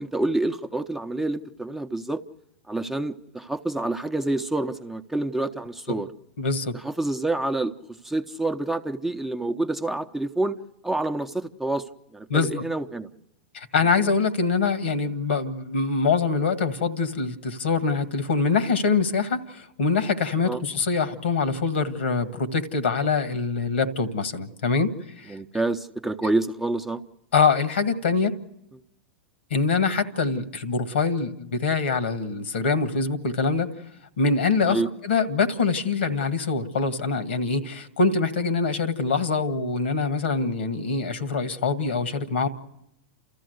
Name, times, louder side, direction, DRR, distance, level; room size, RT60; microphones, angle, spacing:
voice 1, 0.0-2.2 2.7-6.1 6.8-7.7 8.0-10.5 10.8-11.8 12.1-13.1 20.4-20.6 25.3-27.0 34.7-34.9, right 2 dB, 5° right, 6 dB, 0.8 m, -27 dB
voice 2, 6.4-6.8 12.3-12.5 13.5-25.4 27.3-28.4 29.5-33.7 34.2-42.5, left 4 dB, 75° left, 10 dB, 1.7 m, -24 dB
30.0 x 14.0 x 8.0 m, 0.84 s
hypercardioid pair, 105°, 6 cm